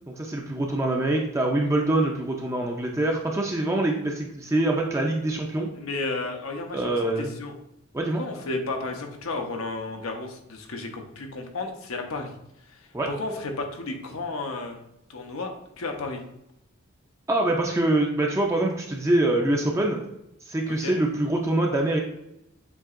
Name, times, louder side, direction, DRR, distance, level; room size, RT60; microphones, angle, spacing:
voice 1, 0.1-5.7 6.7-7.3 7.9-8.2 12.9-13.1 17.3-20.0 20.5-22.0, right 1 dB, 15° right, 0 dB, 0.4 m, -24 dB
voice 2, 5.7-7.5 8.2-12.4 12.7-14.8 15.1-16.2 20.8-21.0, left 3 dB, 85° left, 3 dB, 0.8 m, -33 dB
7.1 x 2.8 x 2.5 m, 0.83 s
head